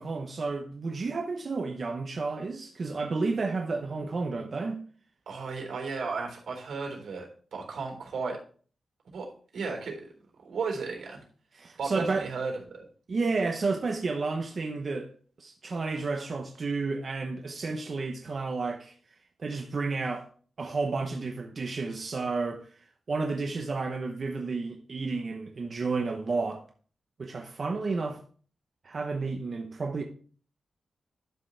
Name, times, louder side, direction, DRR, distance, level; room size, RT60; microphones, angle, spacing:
voice 1, 0.0-4.8 11.5-12.3 13.1-15.1 15.4-18.9 19.4-20.3 20.6-22.6 23.1-26.6 27.2-28.2 28.8-30.0, right 3 dB, 40° right, 0.8 m, -31 dB
voice 2, 5.3-8.4 9.1-9.3 9.5-10.1 10.4-11.2 11.8-12.9, right 4 dB, 85° right, 3.8 m, -34 dB
11.5 x 6.7 x 3.3 m
wide cardioid pair, 165°, 0 cm